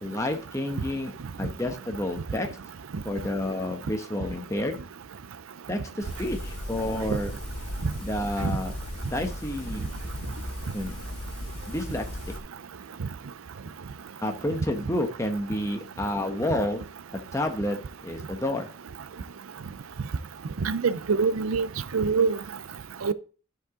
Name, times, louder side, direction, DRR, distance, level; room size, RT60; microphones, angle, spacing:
voice 1, 0.0-2.5 3.0-4.8 5.7-7.4 8.0-8.7 9.0-9.9 10.7-11.0 11.7-12.3 14.2-16.8 17.3-18.7, left 1 dB, 15° left, 1.0 m, -30 dB
sound 1, 6.0-12.4, left 1 dB, 30° left, 2.2 m, -37 dB
voice 2, 20.6-21.7 21.9-22.4 23.0-23.1, right 5 dB, 85° right, 0.5 m, -24 dB
11.5 x 4.9 x 3.8 m
head